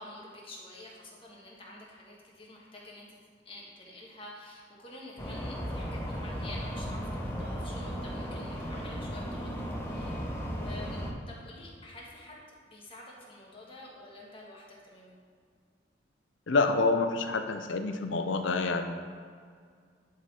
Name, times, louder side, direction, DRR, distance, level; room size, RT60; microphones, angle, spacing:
voice 1, 0.0-3.2 3.4-9.5 9.8-10.2 10.5-12.4 12.7-15.2, left 1 dB, 30° left, -3 dB, 1.4 m, -48 dB
sound 1, 5.2-11.1, equal, 15° left, 0.7 m, -36 dB
voice 2, 16.5-19.0, left 3 dB, 80° left, 7 dB, 0.6 m, -27 dB
10.5 x 3.8 x 4.3 m, 2.1 s
head